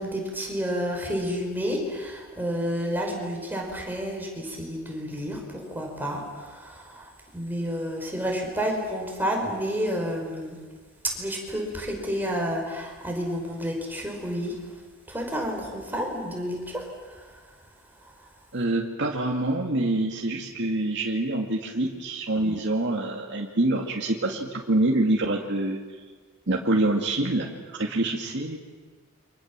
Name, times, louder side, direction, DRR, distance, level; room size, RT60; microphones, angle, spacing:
voice 1, 0.0-10.6 11.0-14.6 15.1-17.4 18.0-18.1 22.4-22.6, equal, 10° right, 0 dB, 5.7 m, -30 dB
voice 2, 18.5-25.8 26.5-28.6, right 2 dB, 55° right, 0 dB, 2.3 m, -26 dB
29.0 x 26.0 x 7.6 m, 1.4 s
head